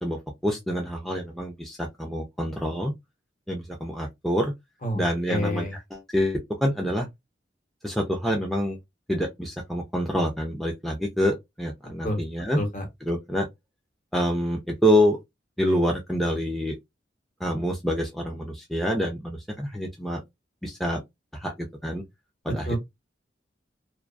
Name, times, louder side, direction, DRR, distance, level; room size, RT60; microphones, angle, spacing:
voice 1, 0.0-2.9 3.5-4.5 4.9-7.1 7.8-8.8 9.1-12.6 13.0-13.5 14.1-15.2 15.6-16.8 17.4-20.2 20.6-21.0 21.3-21.5 21.8-22.0 22.4-22.8, equal, ahead, 0.4 m, -26 dB
voice 2, 5.3-5.7 12.0-12.2 12.5-12.8 22.5-22.8, left 1 dB, 45° left, 1.0 m, -28 dB
2.3 x 2.3 x 2.4 m
head